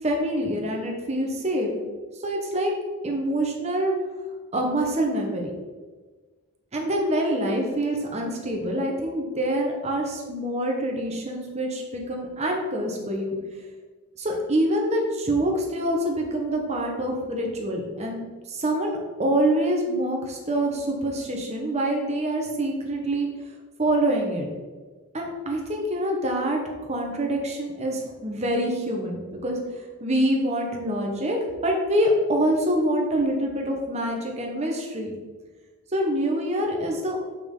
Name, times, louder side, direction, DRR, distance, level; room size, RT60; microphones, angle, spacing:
voice 1, 0.0-1.7 2.2-2.7 3.0-3.9 4.5-5.5 6.7-13.4 14.2-18.2 18.5-23.3 23.8-24.5 25.1-26.6 26.9-29.6 30.0-31.4 31.6-35.1 35.9-37.2, right 1 dB, 30° right, 1 dB, 1.3 m, -25 dB
7.0 x 5.9 x 3.8 m, 1.3 s
head